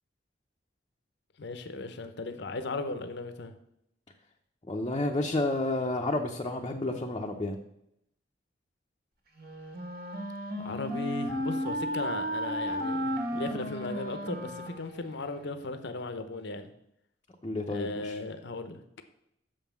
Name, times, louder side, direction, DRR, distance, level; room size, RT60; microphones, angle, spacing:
voice 1, 1.4-3.5 10.6-16.7 17.7-18.8, left 3 dB, 65° left, 9 dB, 0.8 m, -37 dB
voice 2, 4.7-7.6 17.4-18.2, left 2 dB, 25° left, 0 dB, 0.7 m, -30 dB
Wind instrument woodwind instrument, 9.4-15.5, equal, 55° right, 1.7 m, -34 dB
6.8 x 5.6 x 7.2 m, 0.79 s
head